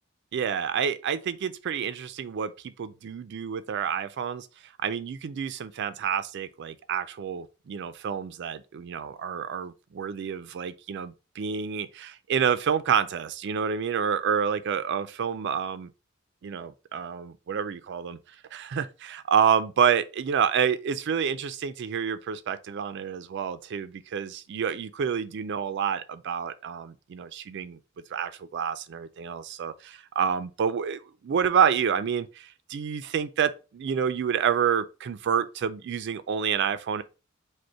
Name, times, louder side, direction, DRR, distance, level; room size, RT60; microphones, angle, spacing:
voice 1, 0.3-4.5 4.8-15.9 16.4-18.2 18.5-27.8 28.1-37.0, right 7 dB, 60° right, 0.4 m, -28 dB
5.1 x 2.1 x 4.2 m
head